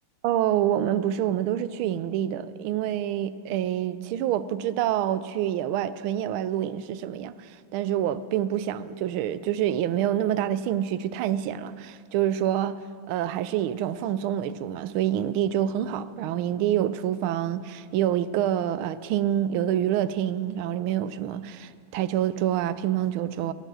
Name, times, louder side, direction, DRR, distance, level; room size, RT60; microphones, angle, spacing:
voice 1, 0.2-12.8 13.1-23.5, right 11 dB, 80° right, 15 dB, 1.4 m, -27 dB
18.0 x 8.9 x 6.2 m, 2.1 s
omnidirectional pair, 2.3 m